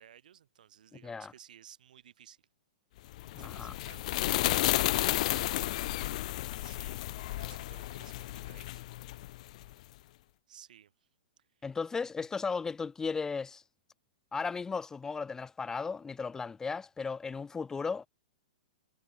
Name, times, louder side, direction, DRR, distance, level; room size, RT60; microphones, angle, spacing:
voice 1, 0.0-2.4 3.4-5.4 6.6-7.0 7.4-8.8 10.5-10.9 12.2-12.3, right 9 dB, 70° right, 6.3 m, -56 dB
sound 1, 3.1-9.7, left 16 dB, 55° left, 0.6 m, -32 dB
voice 2, 3.3-3.7 11.6-13.6 14.3-18.1, left 5 dB, 10° left, 0.8 m, -35 dB
hypercardioid pair, 125°, 5 cm